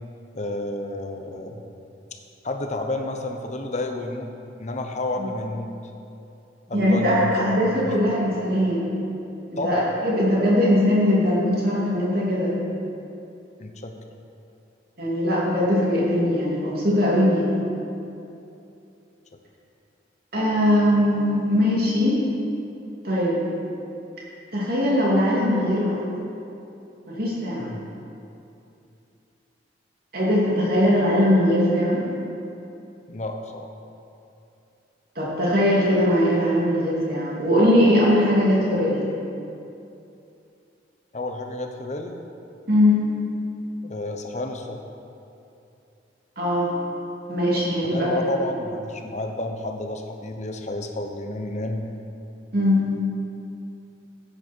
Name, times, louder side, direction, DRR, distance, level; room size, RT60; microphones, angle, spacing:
voice 1, 0.3-1.6 2.4-4.3 4.6-5.7 6.7-7.6 7.8-7.9 9.6-9.9 13.6-13.9 27.6-27.8 33.1-33.7 41.1-42.2 43.8-44.8 47.9-51.9, left 2 dB, 40° left, 4 dB, 0.9 m, -30 dB
voice 2, 6.7-8.8 9.6-12.5 15.0-17.5 20.3-22.2 23.0-23.4 24.5-25.9 27.1-27.7 30.1-32.0 35.2-39.0 42.7-43.0 46.4-46.7 47.3-48.2 52.5-52.9, left 1 dB, 55° right, -6 dB, 3.0 m, -20 dB
13.5 x 9.0 x 4.6 m, 2.7 s
head